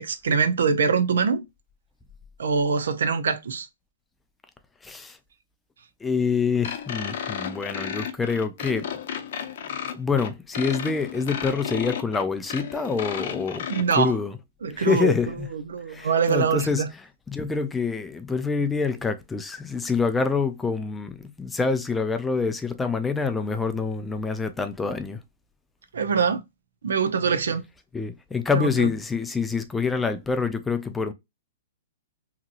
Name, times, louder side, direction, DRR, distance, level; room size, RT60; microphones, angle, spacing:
voice 1, 0.0-1.4 2.4-3.7 13.7-14.1 14.6-15.2 15.5-16.9 25.9-26.4 26.8-27.6 28.5-28.9, right 5 dB, 90° right, 0.6 m, -23 dB
voice 2, 4.8-5.2 6.0-8.9 9.9-13.7 13.9-14.4 14.7-15.5 15.9-16.8 17.3-25.2 27.9-31.1, left 5 dB, 10° left, 0.3 m, -26 dB
sound 1, 6.6-13.8, left 8 dB, 55° left, 0.6 m, -33 dB
2.9 x 2.6 x 2.5 m
hypercardioid pair, 160°, 0 cm